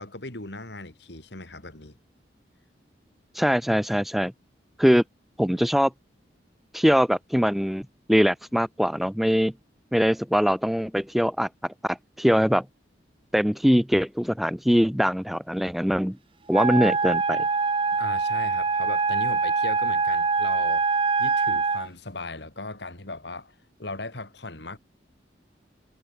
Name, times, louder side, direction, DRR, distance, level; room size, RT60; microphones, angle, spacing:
voice 1, 0.0-1.9 17.9-20.9 21.2-23.5 23.8-24.8, left 2 dB, 70° left, 3.4 m, -38 dB
voice 2, 3.3-4.3 4.8-5.0 5.4-5.9 6.7-9.5 9.9-12.7 13.3-16.2 16.5-17.4, equal, ahead, 0.5 m, -22 dB
Wind instrument woodwind instrument, 16.5-21.9, right 4 dB, 30° right, 0.8 m, -24 dB
head